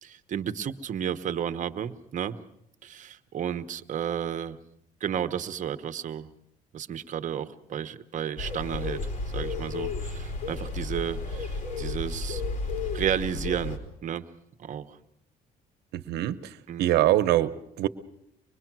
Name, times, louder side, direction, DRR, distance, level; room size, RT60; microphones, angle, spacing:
voice 1, 0.0-2.4 2.8-4.6 5.0-6.3 6.7-9.0 9.3-12.4 12.9-14.2 14.6-15.0 16.7-17.0, right 9 dB, 50° right, 11 dB, 1.1 m, -32 dB
sound 1, 8.4-13.8, left 3 dB, 50° left, 4.0 m, -32 dB
voice 2, 15.9-16.5 16.8-17.9, right 14 dB, 75° right, 12 dB, 1.0 m, -24 dB
25.0 x 21.5 x 6.2 m, 0.78 s
cardioid pair, 110°, 17 cm